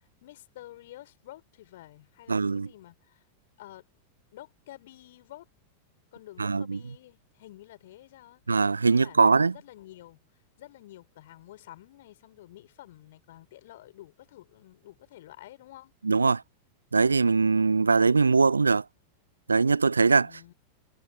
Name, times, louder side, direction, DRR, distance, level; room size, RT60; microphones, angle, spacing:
voice 1, 0.2-3.2 3.6-3.9 4.3-5.5 6.1-8.4 8.9-10.2 10.6-15.9 20.2-20.5, left 15 dB, 55° left, 5.1 m, -50 dB
voice 2, 2.3-2.7 6.4-6.8 8.5-9.5 16.0-16.4 16.9-18.8 19.5-20.3, right 4 dB, 75° right, 0.5 m, -22 dB
figure-of-eight pair, 90°, 0 cm